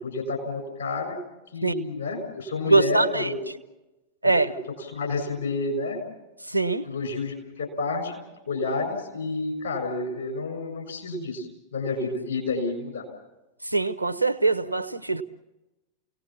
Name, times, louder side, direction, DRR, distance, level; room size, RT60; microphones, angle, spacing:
voice 1, 0.0-1.2 1.5-3.4 4.8-6.1 6.8-8.1 8.5-13.0, left 3 dB, 70° left, 3 dB, 6.5 m, -30 dB
voice 2, 2.7-3.3 4.2-4.5 6.4-6.9 13.6-15.2, right 3 dB, 85° right, 12 dB, 0.7 m, -23 dB
29.0 x 18.0 x 7.3 m, 1.0 s
figure-of-eight pair, 90°, 0 cm